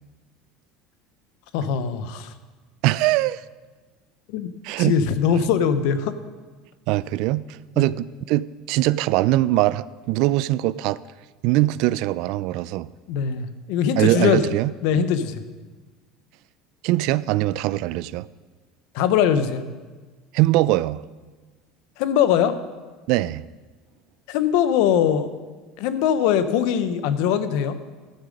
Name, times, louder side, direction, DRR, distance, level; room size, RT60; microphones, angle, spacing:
voice 1, 1.5-2.3 4.3-4.5 4.8-6.2 7.8-7.9 13.1-14.4 14.8-15.4 18.9-19.6 22.0-22.6 24.3-25.3 25.8-27.8, left 8 dB, 70° left, 12 dB, 0.8 m, -21 dB
voice 2, 2.8-3.4 4.6-5.0 6.9-7.4 7.8-11.0 11.4-12.9 14.0-14.7 16.8-18.3 20.3-21.0 23.1-23.4, right 17 dB, 65° right, 19 dB, 0.3 m, -22 dB
12.5 x 7.4 x 5.2 m, 1.3 s
supercardioid pair, 130°, 0 cm